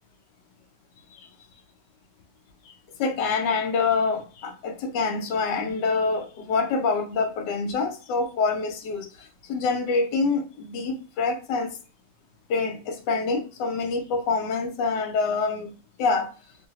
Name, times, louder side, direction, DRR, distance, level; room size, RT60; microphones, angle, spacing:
voice 1, 3.0-9.1 9.5-11.7 12.5-15.7 16.0-16.3, left 4 dB, 80° left, 1.3 m, -26 dB
3.2 x 2.7 x 2.8 m
omnidirectional pair, 1.8 m